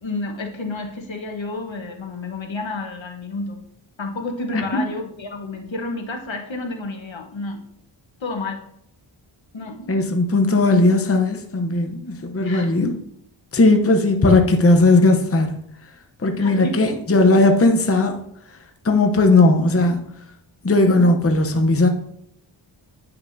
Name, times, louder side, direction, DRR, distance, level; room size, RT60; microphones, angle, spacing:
voice 1, 0.0-3.6 4.0-7.6 8.2-8.6 9.5-9.9 12.4-12.9 16.4-17.0, left 2 dB, 65° left, 3 dB, 1.2 m, -30 dB
voice 2, 9.9-12.9 13.5-15.6 16.2-18.2 18.5-18.6 18.8-20.0 20.6-21.9, left 2 dB, 30° left, 4 dB, 0.8 m, -17 dB
9.6 x 5.7 x 2.6 m, 0.73 s
wide cardioid pair, 60°, 50 cm